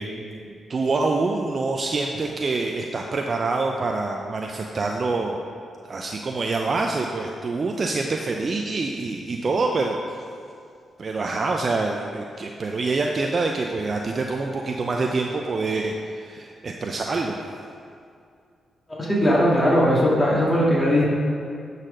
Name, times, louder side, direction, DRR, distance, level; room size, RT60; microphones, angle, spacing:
voice 1, 0.0-5.4 5.8-10.2 11.0-17.4, right 3 dB, 50° right, 2 dB, 0.6 m, -26 dB
voice 2, 18.9-21.0, equal, 30° left, -5 dB, 2.1 m, -19 dB
9.7 x 4.2 x 5.0 m, 2.4 s
hypercardioid pair, 45°, 0 cm